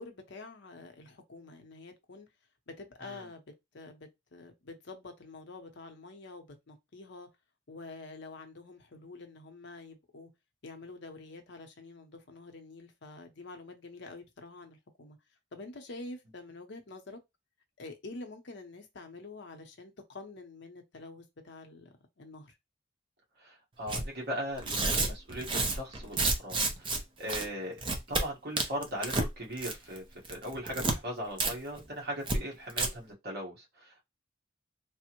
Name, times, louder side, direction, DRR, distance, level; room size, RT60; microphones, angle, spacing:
voice 1, 0.0-2.3 2.7-7.3 7.7-10.3 10.6-15.2 15.5-17.2 17.8-22.6, left 3 dB, 60° left, 0.7 m, -47 dB
voice 2, 23.4-27.8 28.1-34.0, equal, 55° right, 1.3 m, -39 dB
Tearing, 23.9-24.1 24.6-27.0 27.3-27.5 27.8-28.2 28.6-29.3 29.6-30.0 30.3-31.0 31.4-31.5 31.8-31.9 32.3-32.4 32.7-32.9, right 3 dB, 25° right, 0.6 m, -30 dB
3.4 x 2.0 x 2.9 m
head